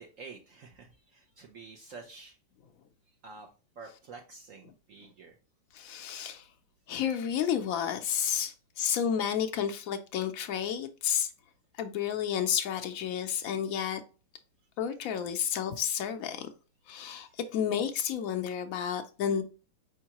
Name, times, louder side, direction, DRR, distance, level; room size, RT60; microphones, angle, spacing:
voice 1, 0.0-2.4 3.1-3.5 3.8-5.4 13.7-13.8 17.0-17.5, right 4 dB, 65° right, 0.8 m, -49 dB
voice 2, 5.7-6.5 6.9-11.3 11.8-14.0 14.8-16.5 16.9-19.4, left 8 dB, 80° left, 0.7 m, -31 dB
4.5 x 3.5 x 2.8 m
omnidirectional pair, 2.0 m